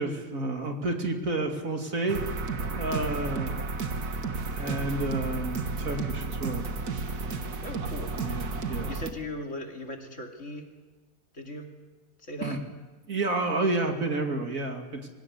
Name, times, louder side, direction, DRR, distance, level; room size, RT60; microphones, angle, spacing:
voice 1, 0.0-2.2 2.7-3.6 4.6-6.7 8.2-8.9 12.4-12.6 13.1-15.1, right 2 dB, 60° right, 3 dB, 2.9 m, -30 dB
sound 1, 2.1-9.1, right 3 dB, 80° right, 2.1 m, -32 dB
voice 2, 2.9-3.2 7.6-8.1 8.9-10.7 11.3-11.7 12.2-12.6, left 1 dB, 50° left, 3 dB, 2.9 m, -38 dB
24.5 x 17.5 x 9.7 m, 1.3 s
omnidirectional pair, 1.6 m